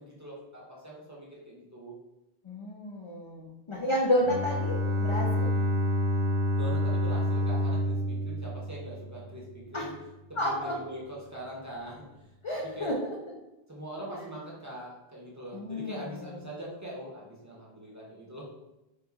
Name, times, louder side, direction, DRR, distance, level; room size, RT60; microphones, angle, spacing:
voice 1, 0.0-1.9 5.5-5.6 6.5-9.9 10.3-12.3 12.6-13.0 13.7-18.5, right 1 dB, 20° right, -5 dB, 0.7 m, -42 dB
voice 2, 2.4-5.6 9.7-9.9 10.4-10.7 12.4-13.1 15.5-16.3, left 1 dB, 55° left, -2 dB, 0.3 m, -31 dB
Bowed string instrument, 4.2-9.4, left 1 dB, 70° right, 1.0 m, -28 dB
3.8 x 2.8 x 2.4 m, 0.98 s
omnidirectional pair, 1.0 m